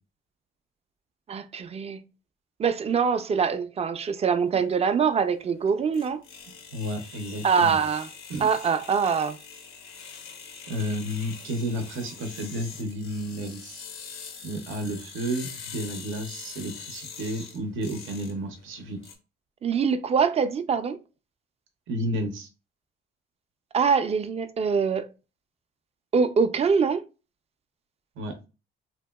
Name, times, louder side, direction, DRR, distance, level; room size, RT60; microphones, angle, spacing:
voice 1, 1.3-2.0 2.6-6.2 7.4-8.1 8.4-9.4 19.6-21.0 23.7-25.1 26.1-27.0, right 6 dB, 30° right, 0.3 m, -24 dB
sound 1, 4.4-19.1, left 6 dB, 90° left, 0.7 m, -44 dB
voice 2, 6.7-7.8 8.3-8.5 10.0-10.3 10.7-13.9 14.4-19.0 21.9-22.5 28.2-28.5, equal, 85° right, 0.6 m, -32 dB
2.8 x 2.7 x 2.2 m
cardioid pair, 90°, 20 cm